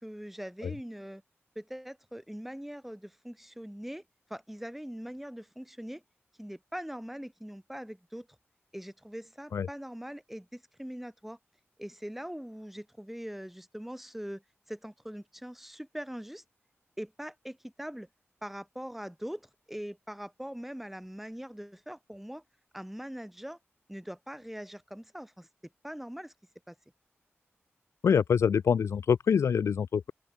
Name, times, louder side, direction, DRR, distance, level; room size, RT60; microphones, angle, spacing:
voice 1, 0.0-1.2 1.5-4.0 4.3-6.0 6.4-8.3 8.7-11.4 11.8-14.4 14.7-16.4 17.0-18.1 18.4-22.4 22.7-23.6 23.9-25.5 25.8-26.3 26.7-26.8, equal, 5° right, 3.0 m, -42 dB
voice 2, 28.0-30.1, left 7 dB, 80° left, 0.4 m, -25 dB
open air
cardioid pair, 65°, 5 cm